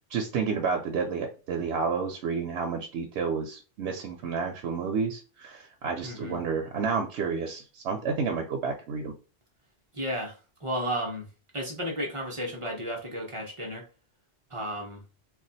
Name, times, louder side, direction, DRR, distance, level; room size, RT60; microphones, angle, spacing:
voice 1, 0.1-9.1, right 5 dB, 85° right, 3 dB, 0.9 m, -30 dB
voice 2, 6.0-6.4 9.9-11.3 11.5-13.9 14.5-15.0, equal, 35° right, 0 dB, 0.7 m, -33 dB
2.4 x 2.3 x 3.9 m, 0.33 s
omnidirectional pair, 1.1 m